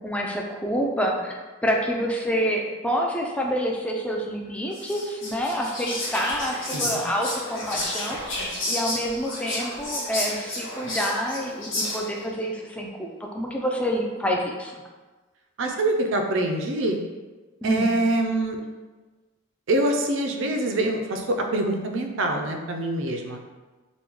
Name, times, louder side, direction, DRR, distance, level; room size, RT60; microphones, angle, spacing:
voice 1, 0.0-8.2 8.7-14.7 17.6-17.9, equal, 5° left, 0 dB, 0.3 m, -27 dB
Whispering, 4.7-12.3, left 1 dB, 75° left, 1.1 m, -31 dB
voice 2, 15.6-17.0 17.6-18.6 19.7-23.4, right 1 dB, 65° right, 3 dB, 0.4 m, -25 dB
3.0 x 2.2 x 3.5 m, 1.3 s
head